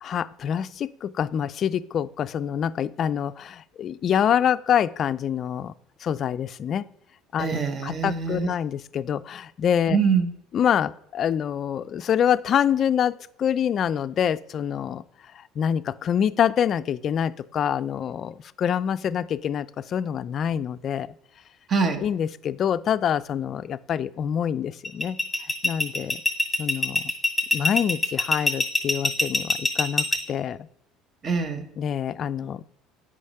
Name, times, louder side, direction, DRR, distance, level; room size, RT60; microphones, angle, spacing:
voice 1, 0.0-5.7 6.0-6.9 7.3-10.0 10.5-15.0 15.3-21.1 22.0-25.2 25.6-26.2 26.6-27.0 27.5-30.6 31.8-32.6, left 9 dB, 45° left, 16 dB, 0.4 m, -26 dB
voice 2, 7.4-8.5 9.9-10.3 21.7-22.0 31.2-31.6, right 5 dB, 40° right, 8 dB, 1.2 m, -24 dB
sound 1, 24.8-30.2, left 2 dB, ahead, 1.9 m, -22 dB
8.4 x 5.3 x 5.6 m, 0.74 s
supercardioid pair, 105°, 0 cm